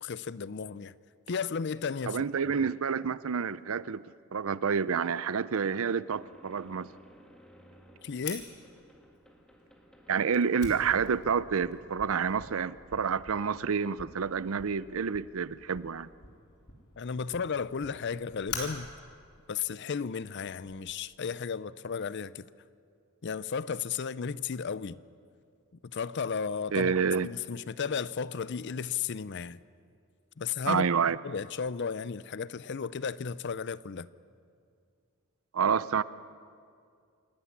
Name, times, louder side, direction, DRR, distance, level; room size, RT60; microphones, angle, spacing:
voice 1, 0.0-0.9 1.3-2.2 8.0-8.5 17.0-18.9 19.5-22.5 23.2-25.0 25.9-26.9 27.2-29.6 30.4-30.9 31.2-34.1, left 6 dB, 50° left, 0.5 m, -34 dB
voice 2, 2.1-4.0 4.3-6.9 10.1-16.1 26.7-27.3 30.7-31.2 35.5-36.0, right 6 dB, 70° right, 0.5 m, -28 dB
sound 1, 6.2-12.2, equal, 5° left, 1.7 m, -58 dB
Fire, 8.2-20.7, left 4 dB, 85° left, 3.9 m, -46 dB
27.0 x 13.0 x 9.7 m
head